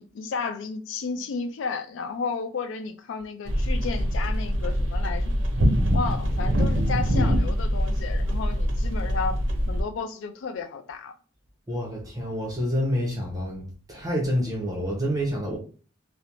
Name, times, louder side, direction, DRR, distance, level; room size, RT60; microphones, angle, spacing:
voice 1, 0.0-5.3 5.9-9.4 9.7-11.1, left 4 dB, 70° left, 0.4 m, -33 dB
sound 1, 3.5-9.8, equal, 65° right, 0.5 m, -24 dB
voice 2, 11.7-13.6 13.9-15.6, equal, 20° right, 0.6 m, -27 dB
2.4 x 2.0 x 2.9 m
head